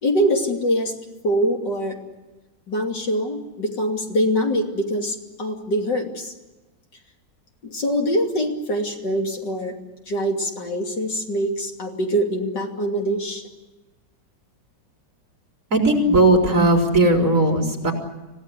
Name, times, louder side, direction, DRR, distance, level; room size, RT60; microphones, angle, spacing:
voice 1, 0.0-0.9 1.2-2.0 2.7-6.3 7.6-9.7 10.1-13.4, equal, 60° left, 2 dB, 3.4 m, -24 dB
voice 2, 15.7-17.9, right 1 dB, 40° right, 1 dB, 4.6 m, -17 dB
27.0 x 17.0 x 9.8 m, 1.1 s
omnidirectional pair, 2.1 m